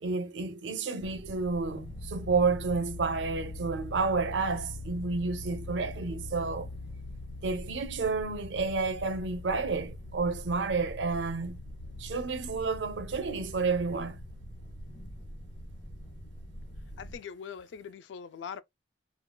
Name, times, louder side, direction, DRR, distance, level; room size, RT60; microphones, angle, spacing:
voice 1, 0.0-6.7 7.4-11.6 12.0-14.2, right 4 dB, 85° right, 0.5 m, -30 dB
sound 1, 1.0-17.2, left 1 dB, 45° left, 1.2 m, -43 dB
voice 2, 17.0-18.6, left 7 dB, 90° left, 0.3 m, -42 dB
3.7 x 2.3 x 2.2 m
head